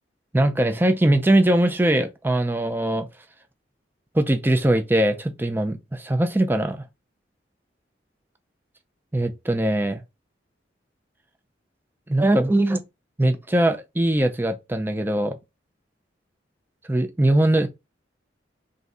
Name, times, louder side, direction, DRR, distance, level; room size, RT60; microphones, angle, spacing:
voice 1, 0.3-3.1 4.1-6.8 9.1-10.0 12.1-12.8 13.2-15.4 16.9-17.7, right 1 dB, 10° right, 0.4 m, -21 dB
3.6 x 2.6 x 4.0 m
head